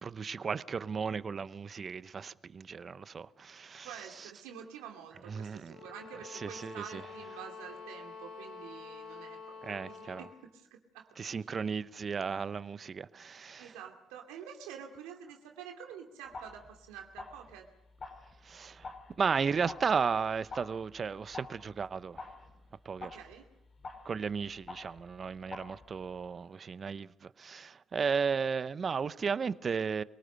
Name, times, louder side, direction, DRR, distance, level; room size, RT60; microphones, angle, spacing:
voice 1, 0.0-4.3 5.3-5.8 6.3-7.0 9.6-10.2 11.2-13.7 18.4-22.3 22.8-23.1 24.0-30.0, right 5 dB, 40° right, 0.8 m, -34 dB
voice 2, 3.8-11.2 13.6-17.7 23.0-23.5, right 8 dB, 80° right, 2.5 m, -48 dB
sound 1, 5.7-10.4, left 5 dB, 70° left, 5.8 m, -48 dB
sound 2, 16.3-26.3, left 3 dB, 45° left, 4.7 m, -49 dB
25.0 x 18.5 x 6.6 m
hypercardioid pair, 60°, 0 cm